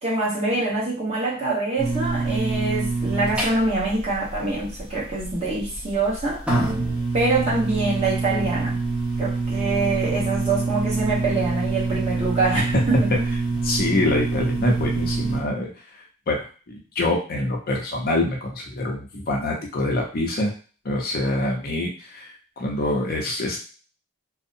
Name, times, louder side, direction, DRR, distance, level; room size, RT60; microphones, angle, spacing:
voice 1, 0.0-6.4 7.1-8.8 9.2-13.3, right 3 dB, 30° right, -5 dB, 1.0 m, -25 dB
sound 1, 1.8-15.4, right 3 dB, 5° right, 0.7 m, -26 dB
voice 2, 13.5-15.7 16.3-20.5 20.8-23.6, left 2 dB, 45° left, 0 dB, 0.6 m, -25 dB
2.7 x 2.0 x 2.6 m, 0.37 s
head